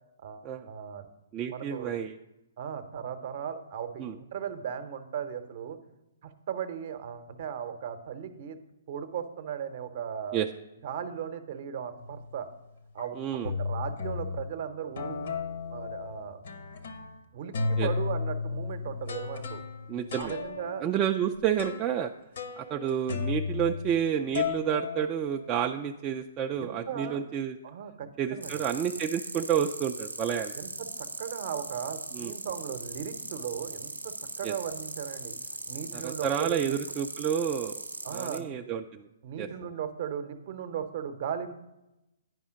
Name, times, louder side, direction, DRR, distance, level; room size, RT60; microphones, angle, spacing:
voice 1, 0.2-1.1 1.5-1.9 2.6-5.8 6.2-8.6 8.9-10.4 10.8-12.5 12.9-15.2 15.7-16.4 17.3-19.6 20.2-20.9 26.6-27.2 27.6-28.6 30.5-35.3 35.7-36.7 38.0-38.6 39.2-41.5, right 8 dB, 45° right, 9 dB, 0.7 m, -37 dB
voice 2, 1.3-2.2 4.0-4.1 10.3-10.5 13.2-13.6 17.8-17.9 19.9-20.3 20.8-22.1 22.6-27.6 28.2-30.5 32.1-32.3 34.4-34.5 35.9-37.8 38.1-39.1 39.4-39.5, right 9 dB, 25° right, 3 dB, 0.3 m, -30 dB
sound 1, 12.0-12.4 13.0-13.1 13.4-14.5 15.0-17.2 17.5-24.1 24.3-25.7, left 4 dB, 60° left, 0.8 m, -34 dB
sound 2, 28.4-38.4, right 2 dB, 90° right, 0.7 m, -39 dB
9.4 x 5.5 x 4.9 m, 0.95 s
figure-of-eight pair, 125°, 0 cm